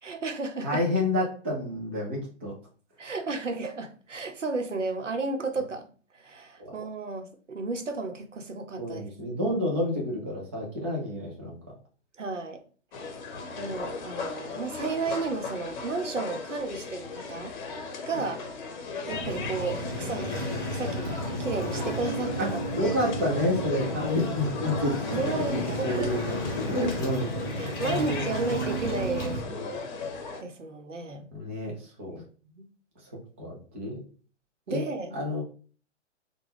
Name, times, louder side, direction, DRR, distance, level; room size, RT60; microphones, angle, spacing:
voice 1, 0.0-0.8 3.0-5.9 6.2-9.0 12.2-12.6 13.6-17.5 18.0-18.4 19.1-20.3 20.7-22.9 25.1-26.1 27.6-29.4 30.4-31.3 32.1-32.2 32.6-32.7 34.7-35.1, right 3 dB, 90° right, 0.8 m, -33 dB
voice 2, 0.6-2.5 6.6-6.8 8.8-11.6 22.4-24.9 25.5-28.5 29.5-29.7 30.0-30.1 31.3-32.2 33.0-33.1 33.4-34.0 34.7-34.8 35.1-35.4, left 1 dB, 10° right, 0.3 m, -30 dB
sound 1, 12.9-30.4, left 4 dB, 40° left, 0.9 m, -37 dB
Waves surf, 19.1-29.4, right 1 dB, 10° left, 1.3 m, -33 dB
3.5 x 2.2 x 3.3 m
figure-of-eight pair, 125°, 36 cm